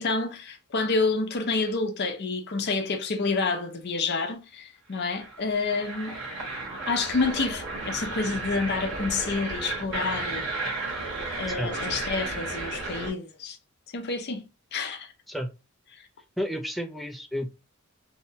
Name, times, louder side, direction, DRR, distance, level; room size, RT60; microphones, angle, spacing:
voice 1, 0.0-6.1 6.9-10.5 11.4-13.6 13.9-14.4 14.7-15.1 15.9-16.1, left 4 dB, 50° left, 0.6 m, -28 dB
sound 1, 5.0-13.1, right 3 dB, 60° right, 1.2 m, -33 dB
voice 2, 16.4-17.6, equal, ahead, 0.4 m, -31 dB
2.7 x 2.1 x 2.8 m
head